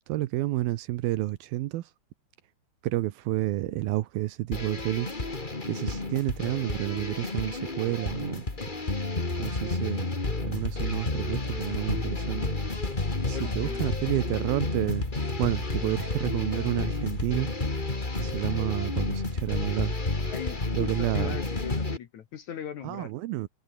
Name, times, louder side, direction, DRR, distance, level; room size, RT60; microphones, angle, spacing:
voice 1, 0.1-1.8 2.8-5.1 5.7-8.4 9.4-10.1 10.4-12.5 13.3-15.1 15.4-17.5 18.2-19.9 20.8-21.4 22.8-23.5, right 16 dB, 75° right, 2.2 m, -30 dB
sound 1, 4.5-22.0, left 3 dB, 40° left, 0.7 m, -31 dB
sound 2, 13.1-19.1, right 4 dB, 50° right, 8.4 m, -58 dB
voice 2, 13.2-14.0 20.2-23.1, left 9 dB, 65° left, 1.9 m, -39 dB
omnidirectional pair, 5.5 m